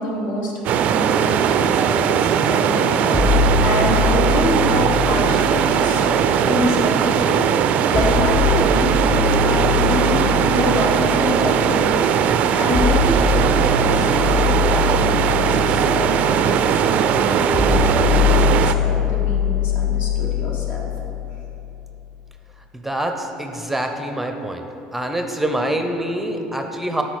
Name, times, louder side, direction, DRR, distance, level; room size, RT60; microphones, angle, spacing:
voice 1, 0.0-6.1 6.4-20.9, left 1 dB, 65° left, -2 dB, 1.5 m, -26 dB
sound 1, 0.6-18.7, right 8 dB, 60° right, 0.3 m, -19 dB
sound 2, 3.1-7.1 7.9-22.0, left 6 dB, 45° left, 0.9 m, -23 dB
voice 2, 22.7-24.6 24.9-27.0, right 1 dB, 5° right, 5 dB, 0.5 m, -25 dB
7.7 x 4.6 x 4.8 m, 2.9 s
supercardioid pair, 90°, 3 cm